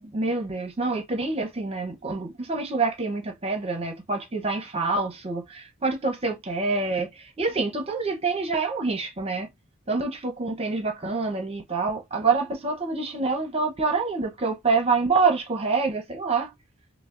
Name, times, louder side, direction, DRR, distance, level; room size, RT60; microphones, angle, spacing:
voice 1, 0.1-9.5 9.9-16.5, right 4 dB, 30° right, 0.7 m, -26 dB
5.5 x 2.1 x 2.5 m
head